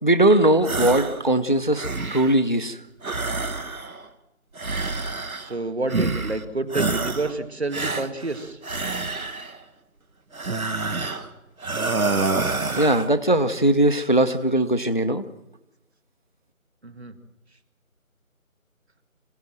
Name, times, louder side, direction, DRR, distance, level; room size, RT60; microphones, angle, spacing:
voice 1, 0.0-2.8 12.7-15.2, right 1 dB, 35° left, 10 dB, 0.7 m, -20 dB
sound 1, 0.6-1.2 1.6-2.4 3.0-4.1 4.6-5.6 5.9-6.4 6.7-7.4 7.7-9.6 10.3-11.3 11.6-13.1, right 3 dB, 75° right, 1.7 m, -27 dB
voice 2, 5.4-8.6 16.8-17.2, right 2 dB, 50° right, 9 dB, 1.9 m, -29 dB
26.0 x 16.5 x 7.5 m, 0.96 s
figure-of-eight pair, 175°, 42 cm